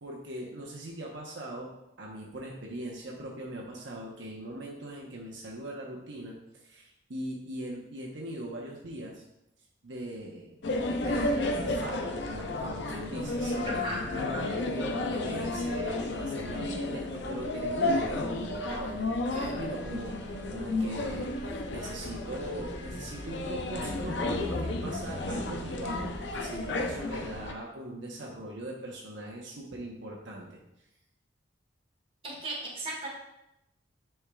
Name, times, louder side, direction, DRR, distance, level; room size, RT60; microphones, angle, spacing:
voice 1, 0.0-9.2 9.8-10.6 11.0-30.6, right 1 dB, 75° right, -3 dB, 1.0 m, -40 dB
sound 1, 10.6-27.5, left 2 dB, 70° left, 0.6 m, -32 dB
voice 2, 13.6-14.5 19.3-19.6 32.2-33.1, right 1 dB, 30° right, -3 dB, 1.8 m, -37 dB
9.9 x 4.5 x 2.4 m, 0.87 s
head